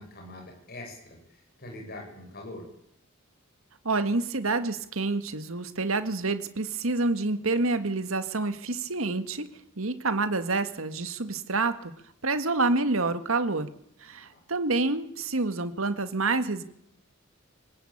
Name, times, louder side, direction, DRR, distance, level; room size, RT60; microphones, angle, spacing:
voice 1, 0.0-2.7 14.3-14.4, left 1 dB, 50° left, 1 dB, 7.0 m, -43 dB
voice 2, 3.8-9.5 9.8-11.9 12.2-13.7 14.0-16.6, right 3 dB, 85° right, 10 dB, 1.8 m, -28 dB
25.0 x 19.0 x 8.9 m, 0.72 s
head